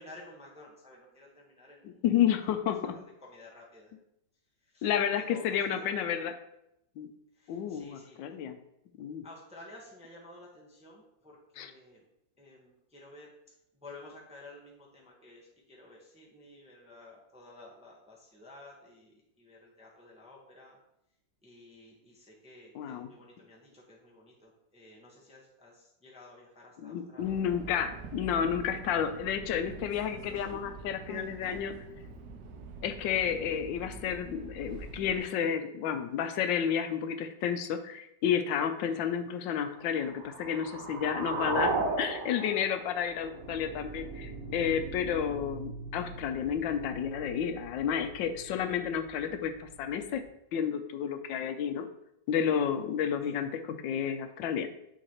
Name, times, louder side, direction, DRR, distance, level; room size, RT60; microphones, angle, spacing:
voice 1, 0.0-2.0 2.8-3.9 4.6-4.9 5.2-6.1 7.3-8.2 9.2-12.1 12.4-13.3 13.7-20.8 21.4-27.3, left 2 dB, 5° right, -3 dB, 0.8 m, -53 dB
voice 2, 1.8-3.0 4.8-6.3 7.0-7.1 7.5-8.6 9.0-9.2 11.6-11.7 22.7-23.1 26.8-31.7 32.8-50.2 50.5-51.9 52.3-54.7, left 8 dB, 85° left, 8 dB, 1.3 m, -31 dB
Subway metro underground, 27.2-35.2, right 4 dB, 70° right, 1.1 m, -45 dB
sound 1, 39.9-43.9, right 3 dB, 85° right, 1.7 m, -34 dB
sound 2, 43.0-50.3, right 3 dB, 35° left, 1.4 m, -45 dB
9.1 x 4.0 x 2.9 m, 0.81 s
omnidirectional pair, 2.0 m